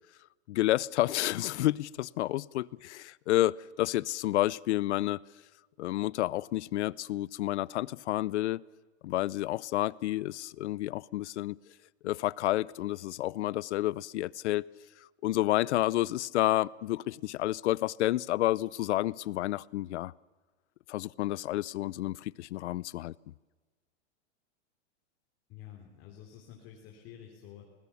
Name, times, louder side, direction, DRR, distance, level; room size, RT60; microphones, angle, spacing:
voice 1, 0.5-5.2 5.8-8.6 9.0-11.6 12.0-14.7 15.2-20.1 20.9-23.1, left 15 dB, 70° left, 0.7 m, -30 dB
voice 2, 25.5-27.7, left 10 dB, 35° left, 3.5 m, -49 dB
27.0 x 20.0 x 7.1 m
supercardioid pair, 145°, 35 cm